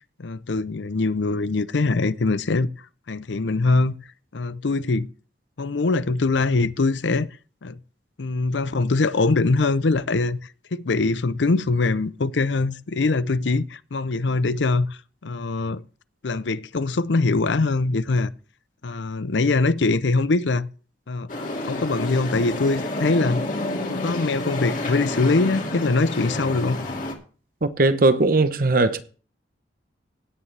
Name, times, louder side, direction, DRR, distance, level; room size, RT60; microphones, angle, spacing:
voice 1, 0.2-2.7 3.1-3.9 4.3-5.1 5.6-7.3 7.6-7.8 8.2-10.4 10.7-15.8 16.2-18.3 18.8-20.7 21.1-21.3 21.6-23.4 23.9-26.8, left 3 dB, 80° left, 0.6 m, -22 dB
sound 1, 21.3-27.1, left 2 dB, 45° left, 2.3 m, -29 dB
voice 2, 27.6-29.0, right 2 dB, 50° right, 0.9 m, -19 dB
16.5 x 9.8 x 3.4 m
head